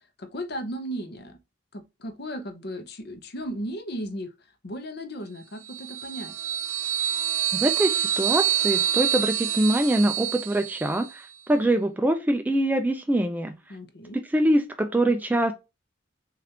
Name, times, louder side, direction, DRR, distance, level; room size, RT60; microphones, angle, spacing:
voice 1, 0.2-1.4 1.7-4.3 4.6-6.4 13.7-14.2, equal, 50° left, 0.7 m, -35 dB
sound 1, 5.7-11.1, right 10 dB, 85° right, 0.5 m, -27 dB
voice 2, 7.5-13.6 14.3-15.5, right 1 dB, 10° right, 0.3 m, -24 dB
6.4 x 2.5 x 2.9 m
head